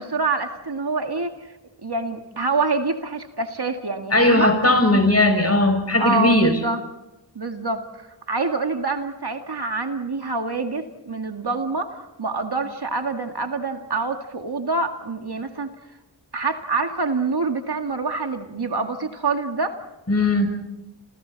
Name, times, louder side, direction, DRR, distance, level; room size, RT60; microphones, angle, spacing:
voice 1, 0.0-1.5 1.8-4.5 6.0-6.8 7.4-15.7 16.3-19.8, right 3 dB, 60° right, 5 dB, 2.1 m, -26 dB
voice 2, 4.1-6.6 20.1-20.6, left 1 dB, 35° left, 5 dB, 6.3 m, -18 dB
30.0 x 28.0 x 4.1 m, 0.93 s
wide cardioid pair, 45°, 45 cm